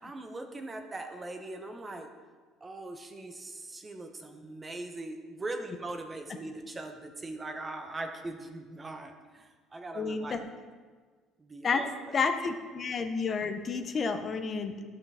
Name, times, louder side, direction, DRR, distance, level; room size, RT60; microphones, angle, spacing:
voice 1, 0.0-2.1 2.6-10.4 11.4-12.2, right 2 dB, 15° right, 5 dB, 0.7 m, -41 dB
voice 2, 9.9-10.4 11.6-11.8 12.1-14.7, left 5 dB, 25° left, 7 dB, 0.6 m, -30 dB
12.0 x 5.7 x 3.5 m, 1.5 s
cardioid pair, 170°, 0 cm